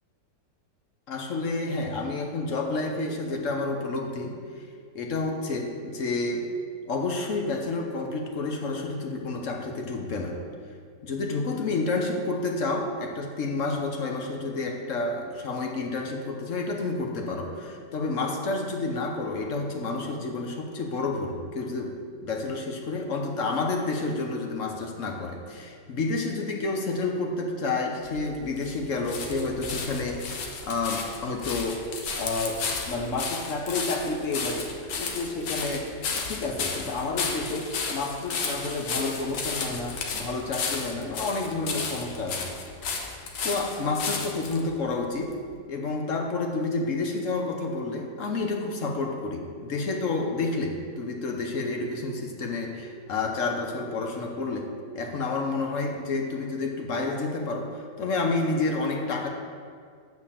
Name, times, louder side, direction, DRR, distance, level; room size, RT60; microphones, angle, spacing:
voice 1, 1.1-4.3 4.9-6.5 6.9-10.4 11.0-22.0 22.2-31.9 32.2-35.9 36.3-42.5 43.4-45.4 45.7-54.7 54.9-59.3, left 3 dB, 55° left, 2 dB, 1.1 m, -30 dB
sound 1, 28.0-44.6 45.3-45.4, left 4 dB, 90° left, 1.6 m, -33 dB
8.6 x 4.2 x 7.2 m, 2.1 s
omnidirectional pair, 1.8 m